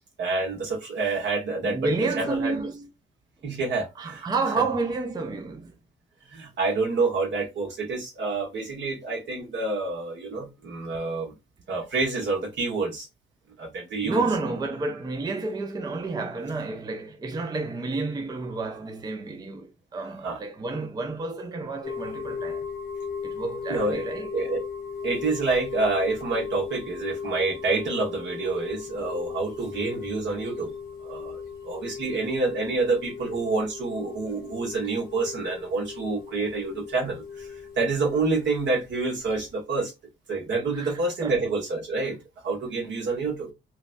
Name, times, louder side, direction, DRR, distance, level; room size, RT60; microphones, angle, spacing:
voice 1, 0.2-1.8 2.2-2.6 3.4-4.3 6.3-11.3 11.7-13.1 13.6-14.2 20.2-20.4 23.7-24.0 24.3-24.6 25.0-30.7 31.0-37.5 37.8-39.9 40.3-42.2 42.4-43.5, right 3 dB, 65° right, 1.4 m, -28 dB
voice 2, 1.6-2.9 4.0-5.8 14.0-22.7 23.2-24.4 40.7-41.4, right 3 dB, 20° right, 0.5 m, -30 dB
sound 1, 21.8-39.5, left 6 dB, 45° left, 0.9 m, -37 dB
3.1 x 2.2 x 2.5 m
cardioid pair, 90°, 20 cm